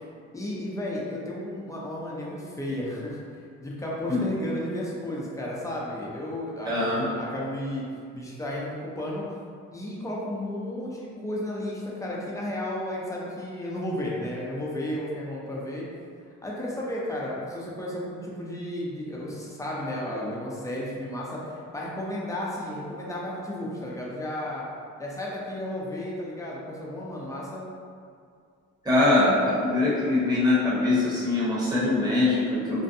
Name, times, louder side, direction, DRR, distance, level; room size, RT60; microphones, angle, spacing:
voice 1, 0.3-3.2 3.6-7.8 8.1-9.2 9.7-15.9 16.4-24.6 25.0-27.6, left 1 dB, 10° left, -5 dB, 0.5 m, -33 dB
voice 2, 6.7-7.0 28.8-32.8, left 2 dB, 15° right, -9 dB, 0.9 m, -23 dB
2.6 x 2.1 x 2.6 m, 2.2 s
cardioid pair, 90°, 30 cm